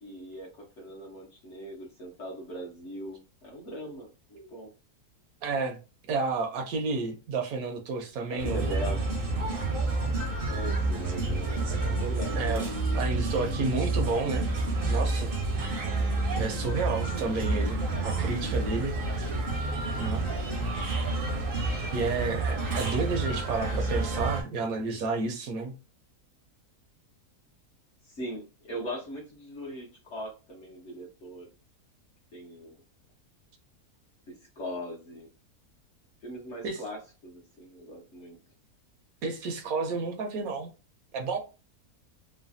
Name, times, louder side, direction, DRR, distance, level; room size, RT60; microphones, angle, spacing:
voice 1, 0.0-4.1 4.5-4.7 8.3-9.0 10.5-12.4 28.0-31.5 32.3-32.8 34.3-35.3 36.2-38.4, equal, 55° left, 0.9 m, -40 dB
voice 2, 5.4-5.8 6.1-8.7 12.4-12.7 12.9-14.5 14.9-15.3 16.4-17.8 18.0-19.3 19.9-20.3 21.9-25.7 36.6-36.8 39.2-40.7 41.1-41.4, right 3 dB, 70° right, 1.0 m, -31 dB
sound 1, 8.4-24.4, right 2 dB, 55° right, 0.6 m, -29 dB
3.1 x 2.2 x 2.5 m
omnidirectional pair, 1.7 m